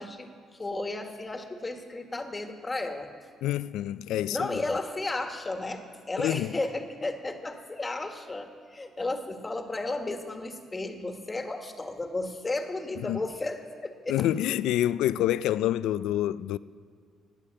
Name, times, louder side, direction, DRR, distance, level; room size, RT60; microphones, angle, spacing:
voice 1, 0.0-3.1 4.3-14.3, left 2 dB, 20° left, 1.5 m, -34 dB
voice 2, 3.4-4.5 6.2-6.5 13.0-13.2 14.1-16.6, left 12 dB, 90° left, 0.3 m, -27 dB
19.5 x 8.7 x 7.7 m
cardioid pair, 115°, 0 cm